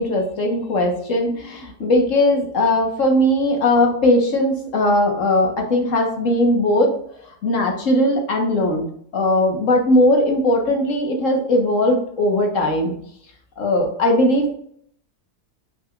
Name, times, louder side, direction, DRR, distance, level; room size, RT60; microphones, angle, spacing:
voice 1, 0.0-6.9 7.4-8.9 9.1-12.9 13.6-14.6, left 1 dB, 55° left, 1 dB, 1.8 m, -19 dB
8.3 x 5.8 x 2.6 m, 0.63 s
omnidirectional pair, 1.6 m